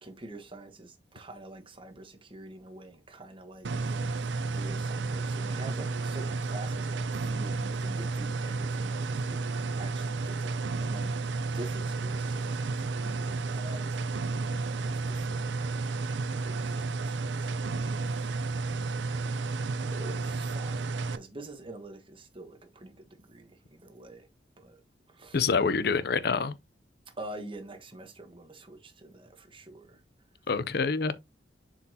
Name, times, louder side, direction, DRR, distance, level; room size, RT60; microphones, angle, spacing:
voice 1, 0.0-11.1 11.5-15.9 16.3-18.2 18.7-24.3 24.6-24.8 25.1-25.5 27.1-30.0, right 2 dB, 30° right, 1.2 m, -47 dB
sound 1, 3.6-21.2, right 3 dB, 85° right, 0.5 m, -32 dB
voice 2, 25.3-26.6 30.5-31.1, left 5 dB, 60° left, 0.6 m, -26 dB
6.8 x 4.9 x 2.8 m
head